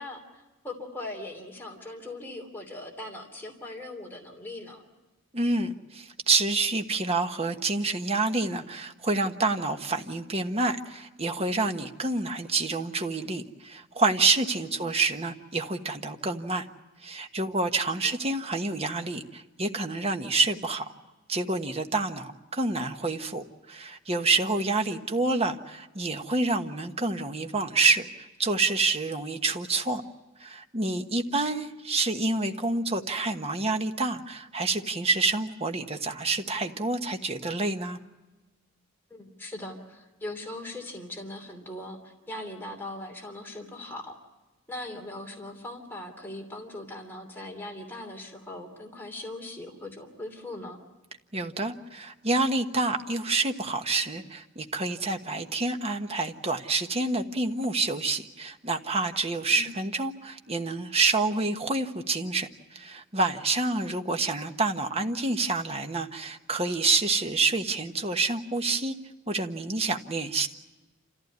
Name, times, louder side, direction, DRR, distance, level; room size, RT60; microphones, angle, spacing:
voice 1, 0.0-4.8 14.6-14.9 18.0-18.2 24.9-25.0 39.1-44.2 44.7-50.8 59.5-59.7, left 1 dB, 10° left, 1 dB, 3.0 m, -40 dB
voice 2, 5.3-16.7 17.0-20.9 21.3-30.0 30.4-38.0 51.3-68.9 69.3-70.5, right 3 dB, 30° right, 6 dB, 1.3 m, -28 dB
28.0 x 15.0 x 9.5 m, 1.2 s
head